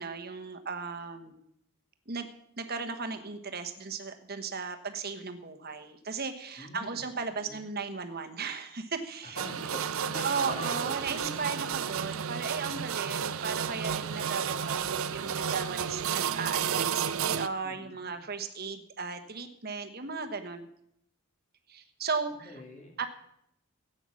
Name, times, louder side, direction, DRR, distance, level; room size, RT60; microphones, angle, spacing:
voice 1, 0.0-1.4 2.1-2.3 2.6-9.4 10.2-20.7 21.7-22.6 23.0-23.1, right 5 dB, 45° right, 7 dB, 1.2 m, -36 dB
voice 2, 6.6-7.0 7.4-7.6 9.2-11.7 17.6-18.2 22.3-23.0, left 2 dB, 35° left, 2 dB, 2.4 m, -45 dB
sound 1, 9.4-17.5, right 7 dB, 65° right, 0.6 m, -32 dB
15.5 x 8.9 x 6.4 m, 0.76 s
head